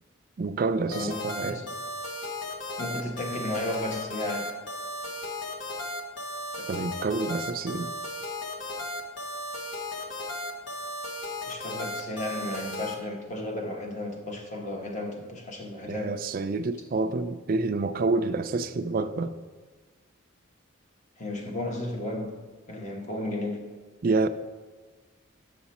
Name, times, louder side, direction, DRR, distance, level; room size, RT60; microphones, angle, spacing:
voice 1, 0.4-1.6 6.6-7.9 15.9-19.4 24.0-24.3, right 3 dB, 45° right, 9 dB, 0.4 m, -28 dB
sound 1, 0.9-12.9, left 1 dB, 65° left, 1.1 m, -35 dB
voice 2, 0.9-1.7 2.8-4.6 11.5-16.2 21.2-22.4 22.7-23.6, left 1 dB, 35° left, 1 dB, 1.1 m, -34 dB
7.7 x 5.8 x 4.2 m, 1.4 s
head